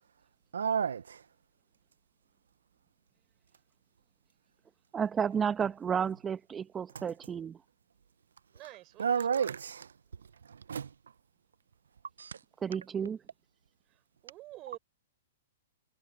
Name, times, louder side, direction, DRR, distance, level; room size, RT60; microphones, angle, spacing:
voice 1, 0.5-1.2 9.0-9.9 10.5-10.9 12.2-12.4, right 7 dB, 80° right, 0.7 m, -31 dB
voice 2, 4.9-7.6 12.6-13.2, right 7 dB, 20° right, 1.2 m, -32 dB
voice 3, 8.5-9.0 9.3-9.5 13.9-14.8, right 17 dB, 35° right, 6.5 m, -49 dB
hypercardioid pair, 125°, 0 cm